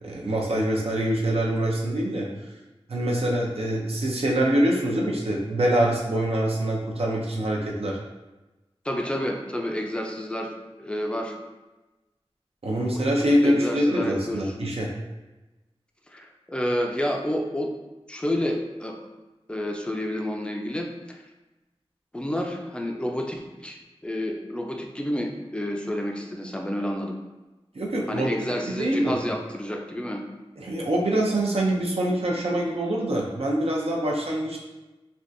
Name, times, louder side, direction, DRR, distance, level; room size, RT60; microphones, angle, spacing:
voice 1, 0.0-2.3 2.9-8.0 12.6-14.9 27.7-28.3 28.7-29.2 30.6-34.6, right 1 dB, 70° right, -2 dB, 0.6 m, -24 dB
voice 2, 8.8-10.5 10.8-11.4 12.9-13.0 13.4-14.5 16.1-17.7 18.1-19.1 19.5-21.2 22.1-27.2 28.1-30.2, left 1 dB, 10° left, 2 dB, 0.4 m, -29 dB
3.4 x 2.4 x 2.6 m, 1.1 s
wide cardioid pair, 50°, 10 cm